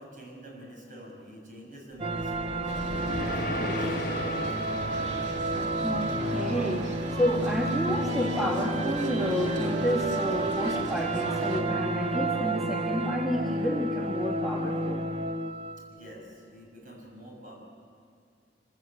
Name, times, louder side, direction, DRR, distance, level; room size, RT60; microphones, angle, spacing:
voice 1, 0.0-2.9 3.2-5.4 15.9-17.6, equal, 50° right, -1 dB, 6.4 m, -47 dB
sound 1, 2.0-15.9, right 2 dB, 35° right, 0.9 m, -30 dB
sound 2, 2.1-6.4, left 2 dB, 55° left, 1.2 m, -37 dB
sound 3, 2.7-11.6, right 1 dB, 80° right, 2.5 m, -39 dB
voice 2, 3.6-3.9 5.8-15.1, equal, ahead, -1 dB, 1.7 m, -30 dB
25.5 x 16.5 x 9.0 m, 2.2 s
head